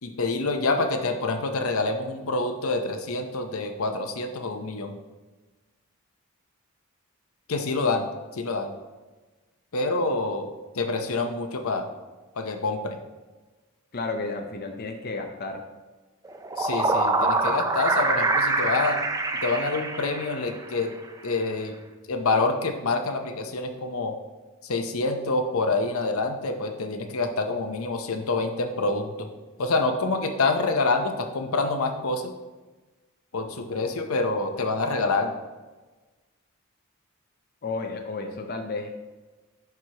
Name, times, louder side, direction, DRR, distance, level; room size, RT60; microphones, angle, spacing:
voice 1, 0.0-5.0 7.5-8.1 8.3-8.8 9.7-11.9 12.4-13.0 16.6-19.0 19.4-20.9 21.2-21.7 22.1-24.2 24.6-29.3 29.6-32.3 33.3-35.3, left 3 dB, 80° left, 5 dB, 0.7 m, -27 dB
voice 2, 13.9-15.6 37.6-38.9, left 3 dB, 45° left, 3 dB, 0.6 m, -32 dB
sound 1, 16.3-20.7, right 2 dB, 15° right, 0.4 m, -25 dB
11.0 x 4.5 x 2.9 m, 1.2 s
head